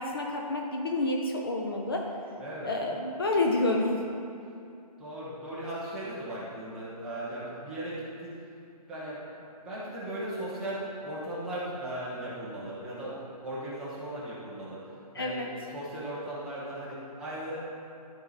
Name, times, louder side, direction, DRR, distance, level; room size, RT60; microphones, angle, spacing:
voice 1, 0.0-2.1 2.6-4.0 15.1-15.5, left 2 dB, 35° left, 0 dB, 0.6 m, -29 dB
voice 2, 2.4-2.7 5.0-8.3 8.9-9.2 9.6-14.8 15.1-17.6, right 1 dB, 5° right, -11 dB, 0.9 m, -37 dB
12.5 x 4.8 x 4.0 m, 2.5 s
hypercardioid pair, 170°, 21 cm